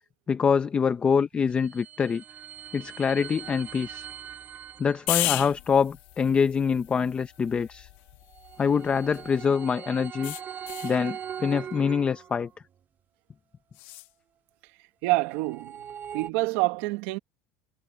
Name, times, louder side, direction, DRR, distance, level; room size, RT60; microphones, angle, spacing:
voice 1, 0.3-2.2 2.7-4.1 4.8-7.9 8.6-10.3 10.8-12.5, left 6 dB, 20° left, 0.7 m, -25 dB
sound 1, 1.3-5.3 8.1-12.6 15.1-16.3, right 8 dB, 30° right, 4.1 m, -41 dB
sound 2, 5.1-9.5 10.2-11.0 13.7-14.1, left 22 dB, 80° left, 2.6 m, -35 dB
voice 2, 15.0-15.8 16.1-17.2, right 22 dB, 75° right, 1.8 m, -27 dB
cardioid pair, 155°, 6 cm